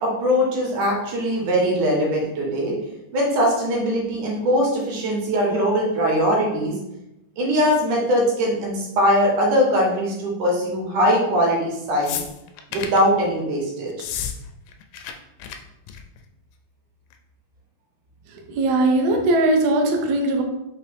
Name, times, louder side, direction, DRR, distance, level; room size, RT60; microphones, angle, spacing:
voice 1, 0.0-2.7 3.1-6.7 7.4-12.2 12.7-13.9, equal, 70° right, -2 dB, 2.5 m, -21 dB
sound 1, 12.0-13.0 13.9-14.4 14.6-15.1 15.4-15.6 15.9-16.2 17.1-17.2, left 9 dB, 80° left, 2.0 m, -31 dB
voice 2, 18.5-20.4, right 2 dB, 90° right, 1 dB, 1.3 m, -19 dB
6.0 x 2.7 x 3.3 m, 0.88 s
omnidirectional pair, 3.8 m